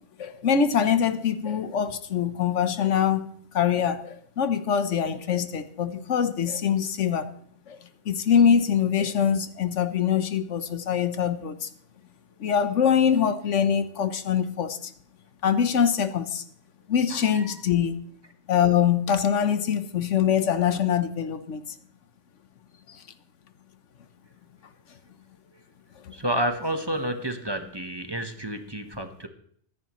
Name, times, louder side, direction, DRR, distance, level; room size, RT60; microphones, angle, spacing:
voice 1, 0.2-3.3 3.5-7.3 7.7-7.8 8.1-11.7 12.4-14.9 15.4-16.4 16.9-18.0 18.5-21.6 22.9-23.0 26.0-26.1, left 8 dB, 85° left, 11 dB, 1.3 m, -24 dB
voice 2, 17.1-17.6 26.1-29.3, right 1 dB, 20° right, 6 dB, 1.1 m, -30 dB
24.5 x 9.9 x 3.1 m, 0.62 s
omnidirectional pair, 1.2 m